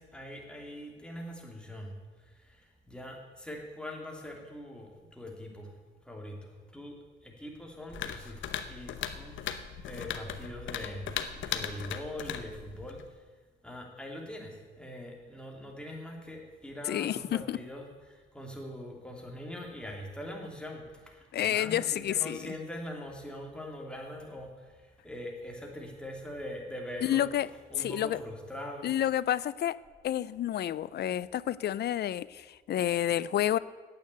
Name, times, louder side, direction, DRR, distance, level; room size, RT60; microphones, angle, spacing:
voice 1, 0.0-1.9 2.2-5.8 6.0-7.0 7.2-9.4 9.9-11.1 11.4-13.0 13.6-27.3 27.7-29.0, left 1 dB, 5° left, 0 dB, 2.8 m, -42 dB
sound 1, 7.9-13.1, left 9 dB, 75° left, 0.9 m, -38 dB
voice 2, 16.9-17.2 17.5-17.6 21.3-22.5 27.0-27.5 27.8-28.2 28.8-29.8 30.0-33.6, left 11 dB, 55° left, 19 dB, 0.4 m, -29 dB
9.4 x 8.6 x 8.3 m, 1.4 s
cardioid pair, 90°, 20 cm